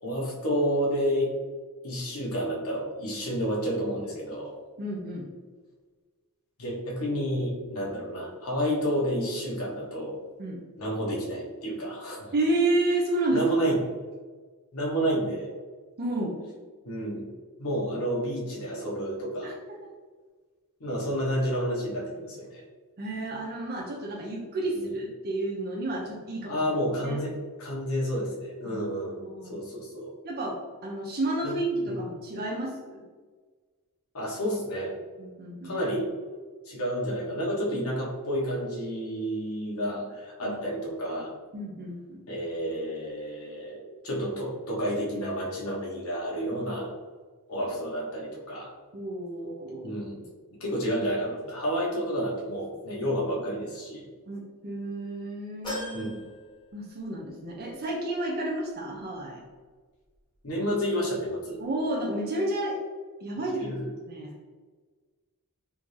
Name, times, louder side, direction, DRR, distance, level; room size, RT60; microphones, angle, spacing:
voice 1, 0.0-1.3 1.8-4.6 6.6-10.1 10.8-12.3 13.3-13.7 14.7-15.5 16.8-17.3 17.6-19.6 20.8-22.6 24.7-24.9 26.5-29.2 29.5-30.1 31.4-31.5 31.8-32.0 34.1-34.9 35.6-36.1 36.6-41.3 42.3-43.8 44.0-46.9 47.5-48.7 49.8-50.2 50.6-54.1 55.9-56.1 60.4-61.6 63.5-63.9, equal, 70° left, -3 dB, 1.1 m, -30 dB
voice 2, 4.8-5.3 10.4-10.6 12.3-13.4 16.0-16.4 19.4-19.5 23.0-26.6 27.0-27.2 28.6-29.5 30.2-30.6 30.8-33.0 35.2-35.8 40.4-40.5 41.5-42.2 48.9-49.9 54.3-56.1 56.7-59.4 61.6-62.8 63.2-63.7 64.1-64.3, right 2 dB, 45° right, -2 dB, 0.6 m, -31 dB
sound 1, 55.6-57.3 57.7-57.8 59.0-59.1, left 1 dB, 20° left, 1.2 m, -39 dB
3.5 x 2.7 x 3.2 m, 1.4 s
head